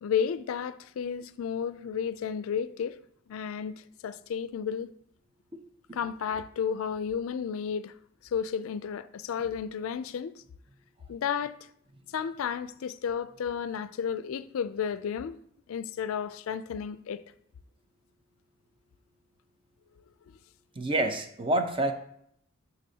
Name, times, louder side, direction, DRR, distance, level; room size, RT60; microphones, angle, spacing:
voice 1, 0.0-3.0 3.3-4.9 5.9-7.9 8.2-10.4 11.1-11.5 12.1-15.4 15.7-17.2, left 7 dB, 85° left, 0.3 m, -32 dB
voice 2, 20.7-21.9, right 1 dB, 25° right, 0.6 m, -27 dB
11.5 x 4.0 x 2.8 m
head